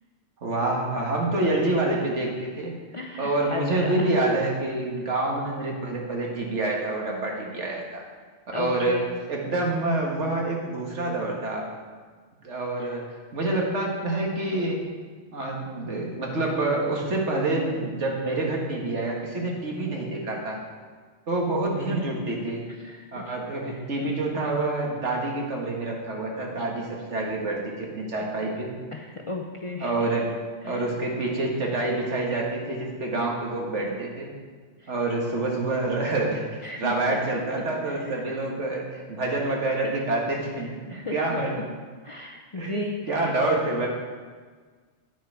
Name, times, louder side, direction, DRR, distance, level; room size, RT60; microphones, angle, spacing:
voice 1, 0.4-2.7 3.2-8.0 8.5-11.7 12.4-13.1 13.3-14.8 15.3-20.6 21.3-22.6 23.1-28.7 29.8-30.3 30.6-34.3 34.9-41.5 42.5-43.9, right 2 dB, 80° right, -1 dB, 1.8 m, -27 dB
voice 2, 2.9-3.9 8.5-9.1 22.8-23.0 28.9-29.9 36.6-36.9 39.8-39.9 40.9-41.4 42.0-43.2, left 2 dB, 40° left, 1 dB, 0.5 m, -34 dB
9.2 x 6.4 x 4.7 m, 1.5 s
omnidirectional pair, 1.2 m